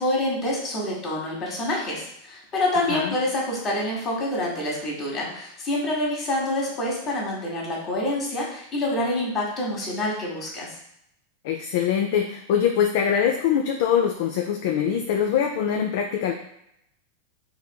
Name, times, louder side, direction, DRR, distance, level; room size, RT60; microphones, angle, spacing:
voice 1, 0.0-10.7, left 1 dB, 35° left, -3 dB, 1.3 m, -27 dB
voice 2, 11.4-16.3, left 8 dB, 65° left, 2 dB, 0.3 m, -23 dB
4.2 x 2.6 x 2.2 m, 0.77 s
hypercardioid pair, 105°, 0 cm